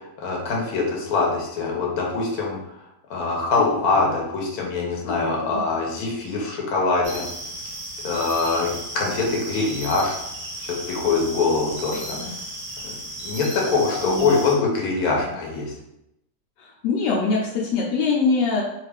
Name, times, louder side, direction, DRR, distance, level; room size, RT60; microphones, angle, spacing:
voice 1, 0.0-2.6 3.1-7.2 8.0-10.2 10.6-12.3 12.8-13.0 13.2-15.7, left 4 dB, 60° left, -2 dB, 1.2 m, -23 dB
voice 2, 3.6-4.1 5.1-5.6 11.1-11.3 12.2-12.3 13.9-14.3 16.6-18.6, left 4 dB, 85° left, -2 dB, 1.2 m, -24 dB
sound 1, 7.0-14.6, right 1 dB, 50° right, 0.6 m, -35 dB
3.0 x 2.4 x 3.4 m, 0.84 s
omnidirectional pair, 1.9 m